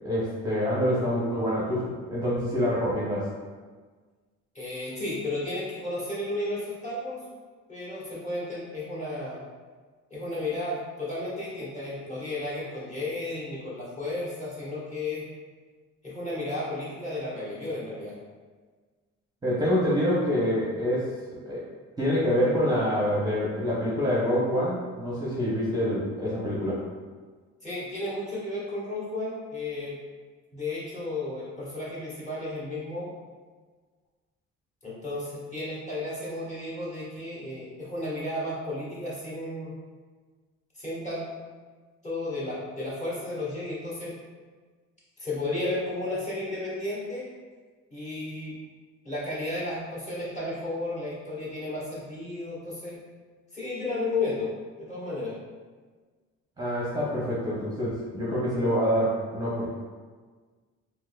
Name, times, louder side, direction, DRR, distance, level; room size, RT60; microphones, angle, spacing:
voice 1, 0.0-3.3 19.4-21.1 21.4-21.6 22.0-26.8 56.6-59.7, equal, 15° right, -8 dB, 0.8 m, -26 dB
voice 2, 4.5-7.2 7.7-9.4 10.1-15.3 16.0-18.1 27.6-29.9 30.5-33.1 34.8-39.7 40.7-41.2 42.0-44.1 45.2-47.3 47.9-48.6 49.0-53.0 53.5-54.5 54.8-55.4, left 2 dB, 25° left, -8 dB, 1.4 m, -33 dB
3.7 x 2.8 x 2.2 m, 1.4 s
cardioid pair, 105°, 29 cm